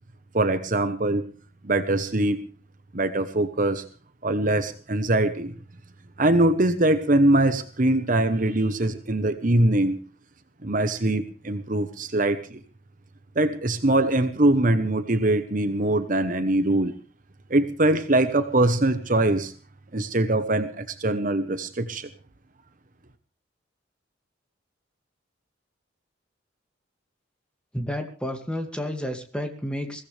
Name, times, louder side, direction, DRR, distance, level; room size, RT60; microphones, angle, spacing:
voice 1, 0.3-1.3 1.6-2.5 2.9-3.8 4.2-5.5 6.2-10.0 10.6-12.6 13.3-16.9 17.5-19.5 19.9-22.1, right 1 dB, 45° right, 9 dB, 1.1 m, -22 dB
voice 2, 27.7-30.0, equal, 5° left, 5 dB, 2.3 m, -31 dB
22.0 x 16.5 x 3.4 m, 0.38 s
head